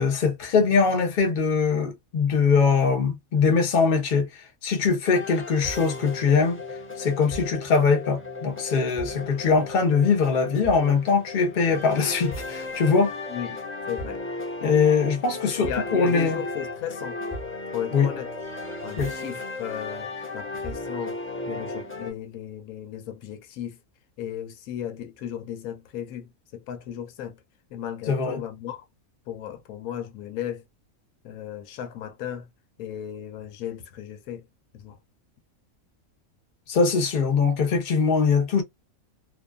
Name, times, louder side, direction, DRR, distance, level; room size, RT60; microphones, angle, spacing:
voice 1, 0.0-6.6 7.0-13.1 14.6-16.4 17.9-18.1 19.0-19.1 28.1-28.4 36.7-38.6, left 5 dB, 45° left, 0.7 m, -22 dB
sound 1, 5.0-22.1, left 2 dB, 10° left, 0.9 m, -35 dB
voice 2, 13.3-13.6 13.9-14.2 15.6-17.2 17.7-18.3 18.8-21.2 21.5-23.8 24.2-27.4 27.7-28.9 29.3-30.6 31.2-32.5 32.8-34.5 34.7-35.0, left 10 dB, 85° left, 1.1 m, -35 dB
2.6 x 2.3 x 2.2 m
omnidirectional pair, 1.5 m